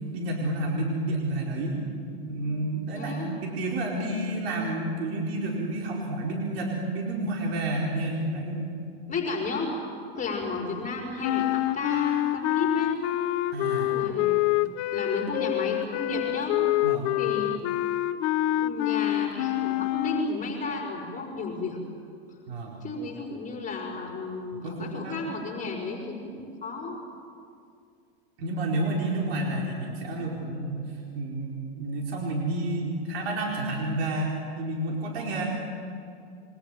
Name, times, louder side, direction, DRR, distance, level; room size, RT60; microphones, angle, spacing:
voice 1, 0.1-1.8 2.3-8.8 13.5-14.0 16.8-17.1 22.5-22.8 24.6-25.2 28.4-35.4, right 1 dB, 70° right, -2 dB, 4.6 m, -30 dB
voice 2, 2.9-3.3 9.1-9.7 10.2-12.9 13.8-14.7 14.9-16.6 17.2-17.6 18.5-21.8 22.8-27.0, left 3 dB, 25° left, -1 dB, 5.3 m, -33 dB
sound 1, 11.2-20.4, left 15 dB, 50° left, 0.9 m, -26 dB
28.0 x 23.5 x 7.8 m, 2.4 s
hypercardioid pair, 100°, 31 cm